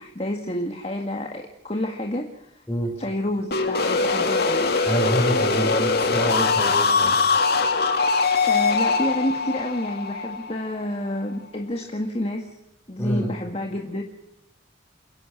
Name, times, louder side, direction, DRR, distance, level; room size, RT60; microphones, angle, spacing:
voice 1, 0.0-2.6 3.0-4.7 8.5-12.6 12.9-14.0, left 1 dB, 30° left, 2 dB, 1.9 m, -29 dB
sound 1, 3.5-11.2, left 4 dB, 50° left, 2.3 m, -22 dB
voice 2, 4.8-7.2 13.0-13.3, equal, 10° left, 0 dB, 6.4 m, -26 dB
29.0 x 11.5 x 8.6 m, 0.85 s
head